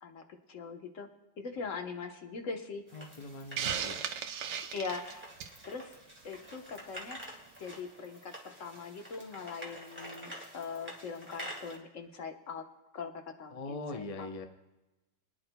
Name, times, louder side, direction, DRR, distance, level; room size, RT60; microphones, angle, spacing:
voice 1, 0.0-1.1 1.4-2.8 4.7-5.3 5.6-6.0 6.2-7.2 7.6-12.6 12.9-14.3, left 5 dB, 50° left, 5 dB, 1.3 m, -41 dB
voice 2, 2.9-4.0 13.5-14.5, left 2 dB, 70° left, 6 dB, 0.3 m, -41 dB
sound 1, 2.9-11.8, equal, 5° right, 1.8 m, -48 dB
Hiss, 3.6-5.6, right 8 dB, 80° right, 1.4 m, -36 dB
25.5 x 10.0 x 2.2 m, 1.0 s
omnidirectional pair, 1.9 m